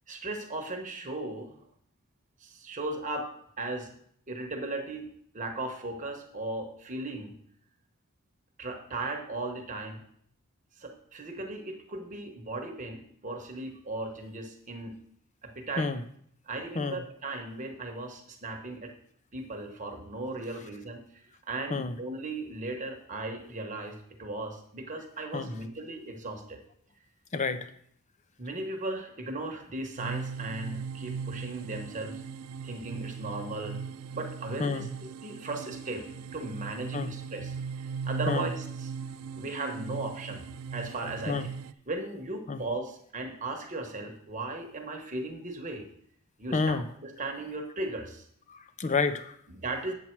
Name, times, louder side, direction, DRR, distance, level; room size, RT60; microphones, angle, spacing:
voice 1, 0.1-1.5 2.4-3.3 3.6-3.9 4.3-5.1 5.3-7.3 8.6-10.0 10.8-14.9 15.4-15.9 16.5-18.9 19.3-26.6 28.4-32.2 32.6-33.8 34.1-36.1 36.3-38.9 39.3-40.4 40.7-41.5 41.9-45.9 46.4-48.2 49.5-49.9, right 2 dB, 35° right, 3 dB, 1.1 m, -37 dB
voice 2, 27.3-27.7 34.6-34.9 36.9-37.1 38.3-38.5 41.3-41.5 42.5-42.6 46.5-46.9 48.5-49.4, left 4 dB, 35° left, 11 dB, 0.5 m, -29 dB
sound 1, 30.0-41.7, right 6 dB, 80° right, 0.4 m, -38 dB
8.3 x 7.2 x 4.5 m, 0.66 s
head